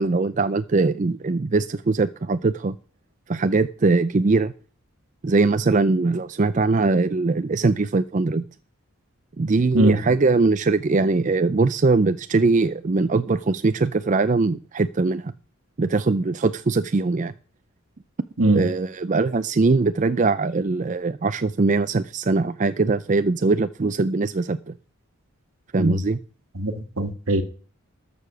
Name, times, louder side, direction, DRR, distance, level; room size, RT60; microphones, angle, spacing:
voice 1, 0.0-2.8 3.3-4.5 5.2-8.4 9.4-15.3 15.8-17.3 18.5-24.7 25.7-26.2, right 3 dB, 35° right, 0.4 m, -21 dB
voice 2, 26.5-27.4, right 1 dB, 70° right, 1.7 m, -20 dB
13.5 x 6.9 x 6.1 m
head